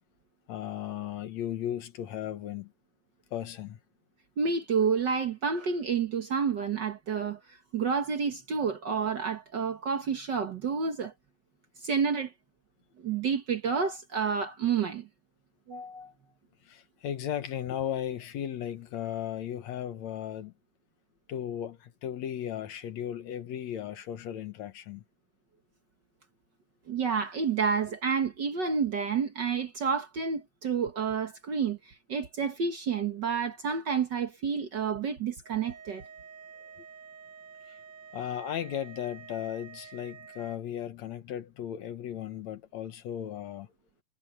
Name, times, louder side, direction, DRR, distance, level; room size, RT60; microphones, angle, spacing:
voice 1, 0.5-2.7 3.3-3.8 16.6-20.5 21.3-25.0 37.7-37.8 38.1-43.7, left 10 dB, 65° left, 1.9 m, -36 dB
voice 2, 4.4-11.1 11.8-12.3 13.0-15.1 15.7-16.1 26.9-36.0, right 6 dB, 75° right, 1.0 m, -29 dB
sound 1, 35.4-40.6, right 6 dB, 50° right, 2.9 m, -49 dB
omnidirectional pair, 4.3 m